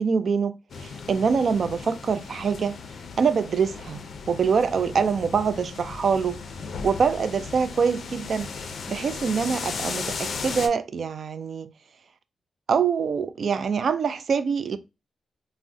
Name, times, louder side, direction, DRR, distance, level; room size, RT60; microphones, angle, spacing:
voice 1, 0.0-2.8 3.2-6.4 6.8-8.5 8.9-11.7 12.7-14.8, right 6 dB, 55° right, 0.3 m, -24 dB
sound 1, 0.7-10.7, left 5 dB, 65° left, 0.4 m, -36 dB
3.5 x 2.1 x 2.6 m
wide cardioid pair, 130°, 0 cm